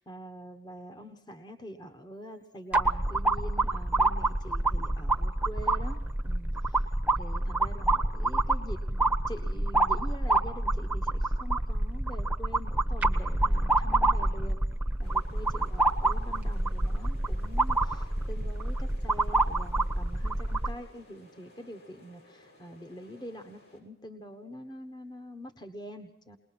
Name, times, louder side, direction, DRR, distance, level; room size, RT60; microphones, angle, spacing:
voice 1, 0.0-14.6 15.0-26.4, equal, 25° left, 6 dB, 1.4 m, -45 dB
sound 1, 2.7-20.7, right 2 dB, 10° right, 1.1 m, -27 dB
sound 2, 15.0-23.8, left 1 dB, 70° left, 7.0 m, -57 dB
21.0 x 21.0 x 6.0 m, 0.80 s
head